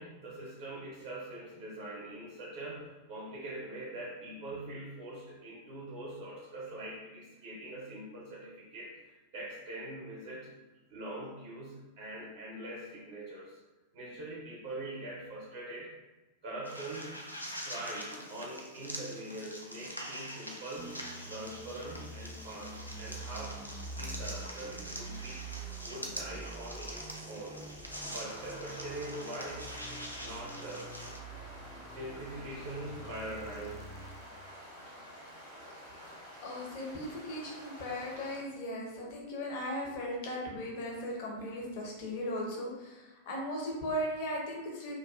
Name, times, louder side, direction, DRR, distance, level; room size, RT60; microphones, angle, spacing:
voice 1, 0.0-10.5 10.9-13.6 13.9-15.9 16.4-17.2 17.6-21.0 21.3-23.6 23.9-25.5 25.8-27.7 28.1-30.9 31.8-34.0, right 1 dB, 55° right, -5 dB, 0.6 m, -43 dB
sound 1, 16.6-31.2, equal, 90° left, 0.3 m, -44 dB
sound 2, 20.8-34.4, right 3 dB, 10° right, 0.3 m, -46 dB
sound 3, 27.9-38.4, equal, 75° left, 1.0 m, -49 dB
voice 2, 36.4-44.9, equal, 45° left, -2 dB, 0.7 m, -37 dB
2.4 x 2.3 x 2.4 m, 1.1 s
figure-of-eight pair, 90°, 0 cm